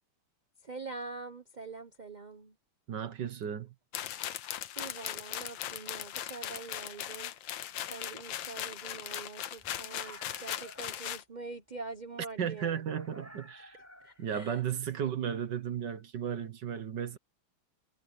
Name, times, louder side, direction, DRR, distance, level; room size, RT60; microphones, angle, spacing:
voice 1, 0.6-2.5 4.8-7.3 7.9-13.0 14.0-14.5, right 4 dB, 40° right, 0.6 m, -44 dB
voice 2, 2.9-3.7 12.4-13.8 14.2-17.2, right 8 dB, 60° right, 1.7 m, -34 dB
sound 1, 3.9-11.2, left 11 dB, 70° left, 1.5 m, -39 dB
sound 2, 9.6-11.0 12.8-14.3, right 1 dB, 5° right, 6.8 m, -52 dB
omnidirectional pair, 2.3 m